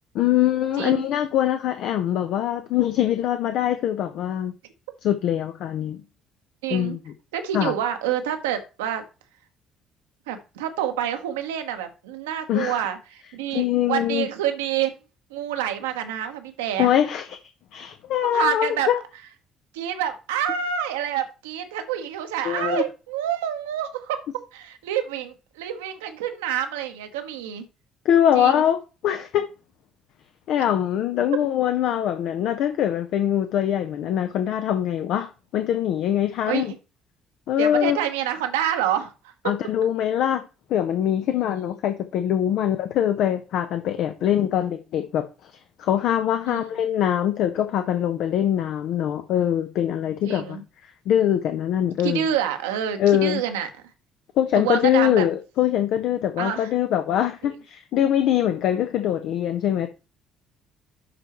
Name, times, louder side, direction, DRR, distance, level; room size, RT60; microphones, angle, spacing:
voice 1, 0.1-4.5 5.0-6.0 6.7-7.0 7.5-7.7 12.5-12.8 13.5-14.3 16.8-17.3 17.7-19.0 22.4-22.8 28.0-29.5 30.5-36.7 37.5-38.0 39.4-40.4 40.7-45.2 45.8-50.6 51.1-52.3 53.0-53.4 54.4-59.9, left 10 dB, 60° left, 0.6 m, -23 dB
voice 2, 6.6-7.0 7.3-9.0 10.3-14.9 15.3-16.9 18.3-18.9 19.7-24.2 24.5-27.6 28.3-28.6 36.5-36.7 37.6-39.5 41.3-41.4 46.4-46.6 50.2-50.6 52.0-53.7 54.5-55.2 56.4-56.7 57.4-57.5, right 10 dB, 70° right, 0.9 m, -27 dB
11.0 x 4.5 x 3.0 m
figure-of-eight pair, 50°, 0 cm